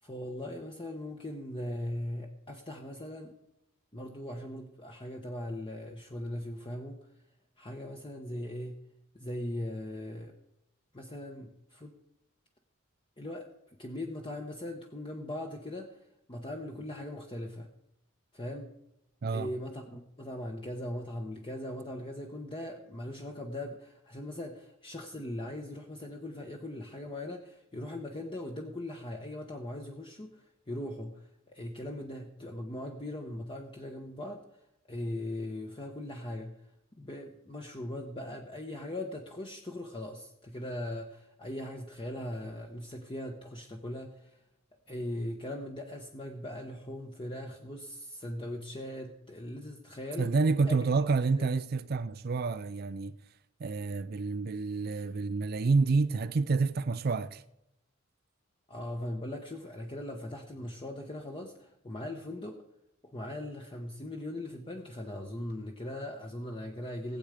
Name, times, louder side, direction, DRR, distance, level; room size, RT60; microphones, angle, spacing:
voice 1, 0.0-3.3 3.9-7.0 7.6-8.8 9.1-10.3 10.9-11.9 13.2-13.5 13.8-16.0 16.3-17.7 18.3-18.7 19.3-34.4 34.9-36.5 37.0-44.4 44.9-50.3 50.7-50.8 51.4-51.5 58.7-62.6 63.0-67.2, left 1 dB, 25° left, 1.0 m, -39 dB
voice 2, 50.2-53.1 53.6-57.4, right 4 dB, 50° right, 0.4 m, -28 dB
19.0 x 8.0 x 5.0 m
head